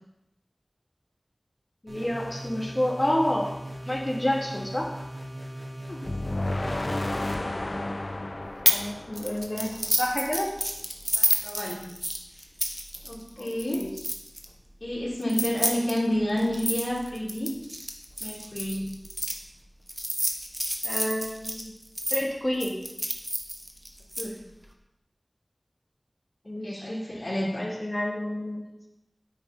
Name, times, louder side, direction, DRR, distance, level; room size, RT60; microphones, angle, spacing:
voice 1, 1.8-3.5 3.9-4.9 8.7-9.7 10.0-10.5 13.4-13.9 20.8-21.7 22.1-22.7 26.5-26.9 27.6-28.6, left 1 dB, 30° left, -3 dB, 2.3 m, -29 dB
sound 1, 1.9-7.0, equal, 65° right, 3.7 m, -39 dB
sound 2, 6.0-10.1, left 2 dB, 60° left, 0.7 m, -32 dB
sound 3, 8.7-8.9 9.2-14.5 15.2-19.3 19.9-22.2 22.6-24.2, equal, 15° right, 1.3 m, -29 dB
voice 2, 11.2-11.8 13.0-13.8 14.8-17.5 18.2-18.8 24.2-24.3 26.6-27.6, left 1 dB, 85° left, -8 dB, 3.5 m, -29 dB
9.8 x 8.3 x 4.1 m, 0.87 s
wide cardioid pair, 50°, 0 cm